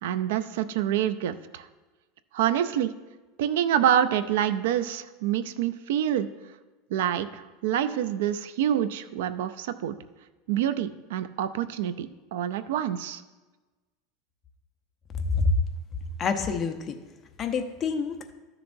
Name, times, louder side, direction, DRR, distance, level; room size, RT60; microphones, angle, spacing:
voice 1, 0.0-1.7 2.3-2.9 3.4-6.3 6.9-10.0 10.5-13.2, right 10 dB, 80° right, 13 dB, 0.5 m, -27 dB
voice 2, 16.2-17.0 17.4-18.3, left 5 dB, 25° left, 6 dB, 0.7 m, -27 dB
13.0 x 6.9 x 2.6 m, 1.2 s
supercardioid pair, 155°, 0 cm